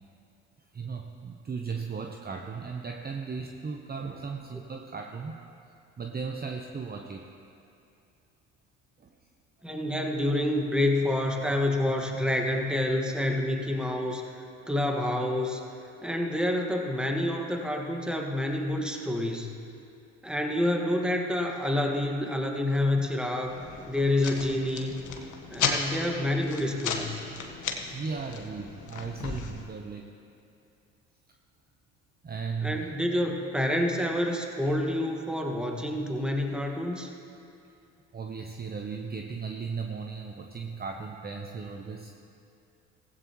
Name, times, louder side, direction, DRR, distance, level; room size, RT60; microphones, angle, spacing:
voice 1, 0.7-5.3 6.0-7.2 9.0-9.1 27.9-30.1 32.2-32.9 38.1-42.2, right 5 dB, 25° right, 3 dB, 0.9 m, -36 dB
voice 2, 9.6-15.7 16.0-19.5 20.2-23.6 23.9-24.9 25.5-27.2 32.6-37.1, left 1 dB, ahead, 1 dB, 1.7 m, -28 dB
sound 1, 23.5-29.6, left 5 dB, 50° left, 1.4 m, -35 dB
16.0 x 15.5 x 3.1 m, 2.6 s
hypercardioid pair, 65°, 37 cm